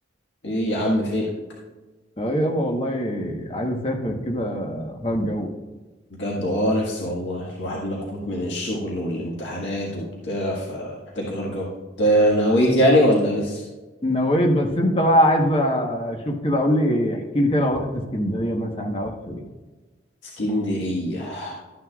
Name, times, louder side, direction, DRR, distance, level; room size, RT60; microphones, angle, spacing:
voice 1, 0.4-1.2 6.2-11.7 12.0-13.6 20.4-21.5, equal, 80° left, -4 dB, 1.7 m, -23 dB
voice 2, 2.2-5.5 14.0-19.4, equal, 30° left, 1 dB, 1.1 m, -23 dB
13.0 x 9.4 x 2.4 m, 1.2 s
head